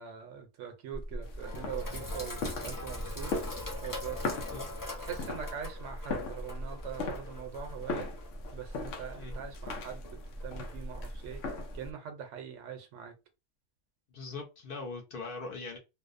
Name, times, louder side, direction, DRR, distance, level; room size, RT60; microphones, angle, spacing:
voice 1, 0.0-3.4 3.8-4.3 5.0-8.2 8.5-11.4 11.7-13.2, right 8 dB, 80° right, 0.9 m, -42 dB
Sink (filling or washing), 0.9-11.9, equal, 30° left, 0.4 m, -40 dB
sound 1, 1.2-11.9, left 3 dB, 85° left, 0.9 m, -40 dB
voice 2, 14.1-15.8, left 3 dB, 55° left, 0.8 m, -41 dB
2.6 x 2.0 x 2.4 m
omnidirectional pair, 1.2 m